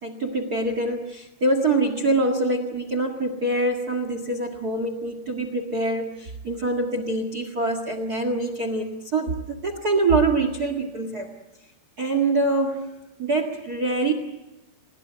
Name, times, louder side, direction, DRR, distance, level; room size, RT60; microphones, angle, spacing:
voice 1, 0.0-11.3 12.0-12.9 13.2-14.1, right 2 dB, 75° right, 9 dB, 0.8 m, -25 dB
30.0 x 21.5 x 8.1 m, 0.99 s
omnidirectional pair, 5.0 m